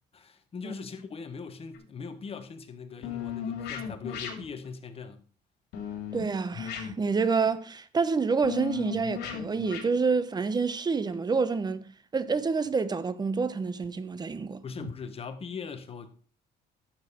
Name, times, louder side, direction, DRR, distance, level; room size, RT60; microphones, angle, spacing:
voice 1, 0.1-5.2 14.6-16.1, left 5 dB, 35° left, 1.5 m, -40 dB
sound 1, 1.7-1.9 3.0-4.6 5.7-6.2 6.5-7.3 8.4-9.9 11.1-11.2 13.8-13.9 14.8-14.9, left 8 dB, 80° left, 2.7 m, -36 dB
voice 2, 6.1-11.9 12.1-14.6, right 4 dB, 25° right, 0.8 m, -28 dB
11.5 x 7.2 x 4.3 m
cardioid pair, 110°, 17 cm